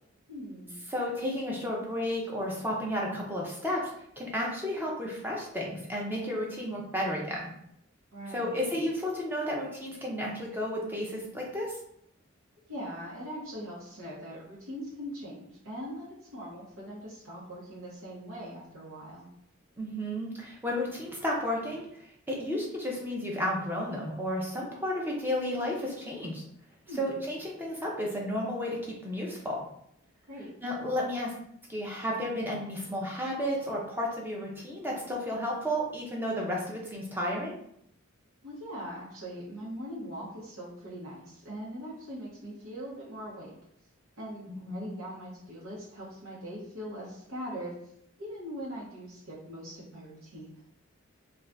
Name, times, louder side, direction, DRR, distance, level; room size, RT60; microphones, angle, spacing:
voice 1, 0.3-0.7 8.1-8.6 12.7-19.3 26.9-27.1 30.3-30.5 38.4-43.5 44.2-47.7 48.2-50.6, equal, 85° right, -7 dB, 0.9 m, -41 dB
voice 2, 0.9-3.9 4.2-7.4 8.3-11.8 19.8-26.4 27.0-28.8 29.0-29.6 30.6-31.3 31.7-37.6 44.7-44.9, left 1 dB, 10° right, -3 dB, 0.6 m, -32 dB
2.6 x 2.3 x 3.3 m, 0.73 s
head